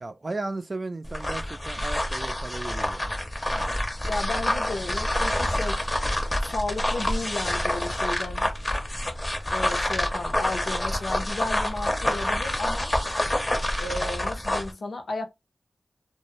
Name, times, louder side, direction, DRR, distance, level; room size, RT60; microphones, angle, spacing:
voice 1, 0.0-3.1 3.5-3.8, right 2 dB, 45° right, 0.4 m, -35 dB
sound 1, 1.0-14.7, left 1 dB, 30° left, 0.7 m, -27 dB
voice 2, 4.0-5.9 6.4-8.5 9.5-12.9 13.8-15.3, left 2 dB, 80° left, 0.6 m, -33 dB
2.2 x 2.0 x 3.0 m
cardioid pair, 55°, 0 cm